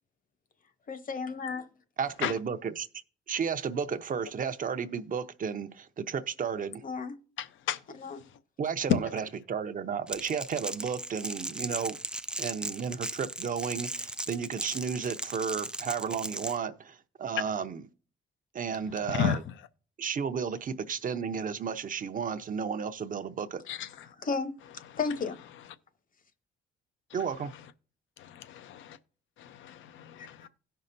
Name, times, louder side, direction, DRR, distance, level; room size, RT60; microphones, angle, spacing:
voice 1, 0.9-1.7 6.8-7.2 8.0-8.2 24.1-24.5 25.0-25.4 30.2-30.5, left 4 dB, 45° left, 1.0 m, -33 dB
voice 2, 2.0-2.9 3.3-6.8 8.6-12.0 12.4-17.9 18.5-19.4 20.0-23.6 27.1-27.5, right 6 dB, 45° right, 0.6 m, -33 dB
voice 3, 7.4-7.8 19.1-19.4 23.7-23.9 28.2-29.0 29.4-30.4, left 9 dB, 80° left, 0.6 m, -33 dB
Crackle, 10.1-16.6, right 1 dB, 5° right, 0.3 m, -37 dB
16.5 x 5.5 x 2.6 m
cardioid pair, 90°, 20 cm